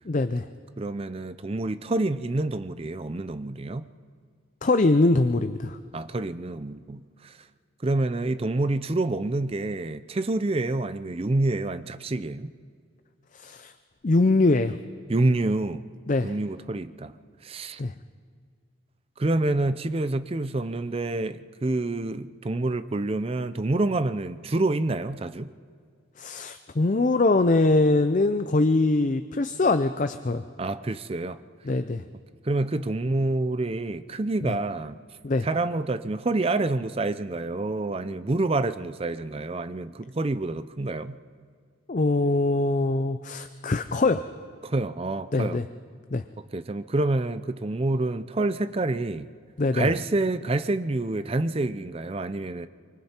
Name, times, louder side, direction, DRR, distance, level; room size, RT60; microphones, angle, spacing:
voice 1, 0.1-0.5 4.6-5.8 13.3-13.7 14.0-14.8 16.1-16.3 17.8-17.9 26.2-30.4 31.6-32.0 34.4-34.5 35.2-35.5 41.9-44.3 45.3-45.6 46.1-46.2 49.6-49.9, left 2 dB, 40° left, 9 dB, 0.5 m, -23 dB
voice 2, 0.8-3.9 5.9-7.3 7.8-12.5 15.1-15.8 16.2-17.1 17.4-17.8 19.2-25.5 30.6-31.4 32.4-35.0 35.4-41.2 44.6-45.6 46.5-49.3 49.7-52.7, right 2 dB, 30° right, 13 dB, 0.5 m, -27 dB
25.0 x 24.5 x 4.4 m, 2.1 s
head